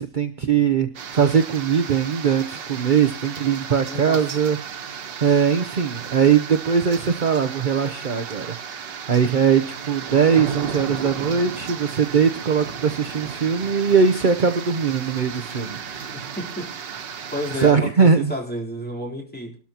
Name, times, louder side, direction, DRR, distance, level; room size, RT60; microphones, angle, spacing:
voice 1, 0.0-4.6 5.2-16.4 17.6-18.3, right 6 dB, 40° right, 8 dB, 0.7 m, -20 dB
sound 1, 0.9-17.7, right 7 dB, 85° right, 2.0 m, -34 dB
voice 2, 3.9-4.3 16.4-16.7 17.3-19.6, equal, 5° left, -2 dB, 3.7 m, -31 dB
27.5 x 13.0 x 2.9 m, 0.40 s
omnidirectional pair, 1.9 m